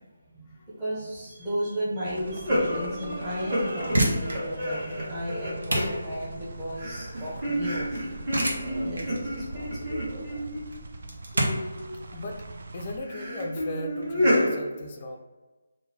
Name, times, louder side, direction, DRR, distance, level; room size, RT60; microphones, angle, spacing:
voice 1, 0.3-8.2 8.6-10.4, equal, 15° right, -9 dB, 0.9 m, -35 dB
sound 1, 2.0-13.0, right 2 dB, 55° right, 0.4 m, -43 dB
sound 2, 2.1-6.4 6.7-10.8 11.3-11.9 13.0-14.6, equal, 30° right, 1.4 m, -30 dB
sound 3, 3.8-14.4, right 1 dB, 80° right, 1.1 m, -32 dB
voice 2, 12.1-12.4 12.7-15.2, left 1 dB, 25° left, 3 dB, 0.3 m, -37 dB
3.8 x 2.5 x 4.1 m, 1.2 s
hypercardioid pair, 170°, 0 cm